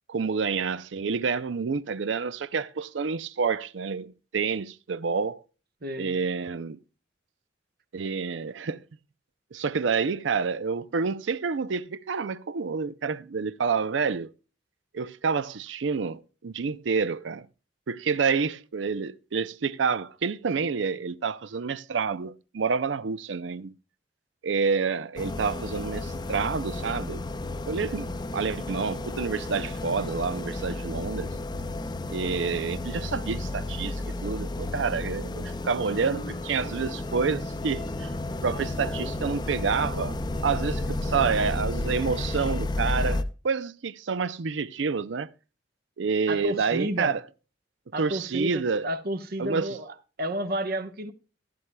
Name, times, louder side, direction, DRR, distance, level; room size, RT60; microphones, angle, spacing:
voice 1, 0.1-5.4 6.0-6.8 7.9-8.8 9.5-14.3 14.9-17.5 17.9-23.7 24.4-27.2 27.7-31.3 32.1-38.1 38.4-40.2 40.4-45.3 46.0-47.2 48.0-48.9 49.4-49.8, right 5 dB, 85° right, 0.5 m, -28 dB
voice 2, 5.8-6.2 46.3-47.1 47.9-51.1, right 1 dB, 55° right, 0.9 m, -31 dB
sound 1, 25.2-43.2, left 2 dB, 25° left, 0.6 m, -32 dB
15.0 x 11.0 x 2.2 m
head